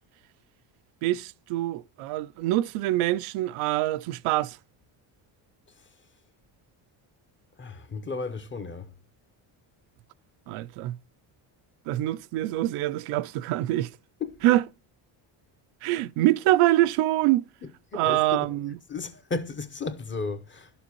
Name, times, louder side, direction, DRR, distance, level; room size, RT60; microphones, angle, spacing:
voice 1, 1.0-4.6 10.5-11.0 11.9-13.9 14.4-14.6 15.8-17.5 17.9-18.8, right 15 dB, 85° right, 0.6 m, -25 dB
voice 2, 7.6-8.9 14.2-14.4 17.9-18.5 18.9-20.7, left 4 dB, 25° left, 0.7 m, -34 dB
11.0 x 7.1 x 2.9 m
cardioid pair, 125°, 49 cm